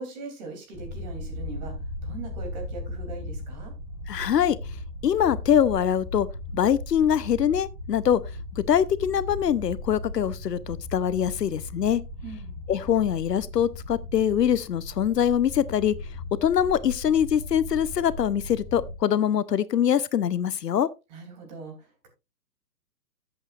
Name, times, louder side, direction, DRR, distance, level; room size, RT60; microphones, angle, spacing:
voice 1, 0.0-1.7 2.0-3.7 12.2-12.6 21.1-22.1, right 4 dB, 25° right, 3.0 m, -40 dB
sound 1, 0.7-18.9, left 1 dB, ahead, 1.1 m, -37 dB
voice 2, 4.1-4.6 5.0-6.3 6.5-8.2 8.6-12.0 12.7-15.9 16.4-20.9, left 9 dB, 75° left, 0.8 m, -23 dB
14.0 x 8.1 x 2.4 m
hypercardioid pair, 160°, 50 cm